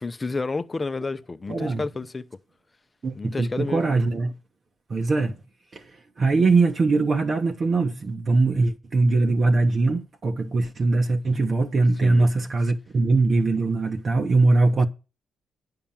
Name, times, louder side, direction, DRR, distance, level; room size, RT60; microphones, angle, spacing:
voice 1, 0.0-2.3 3.1-3.9 12.0-12.3, left 3 dB, 25° left, 0.7 m, -30 dB
voice 2, 1.5-1.8 3.0-4.3 4.9-5.4 5.7-5.8 6.2-14.9, right 3 dB, 40° right, 1.1 m, -21 dB
10.0 x 5.8 x 7.2 m
cardioid pair, 90°, 0 cm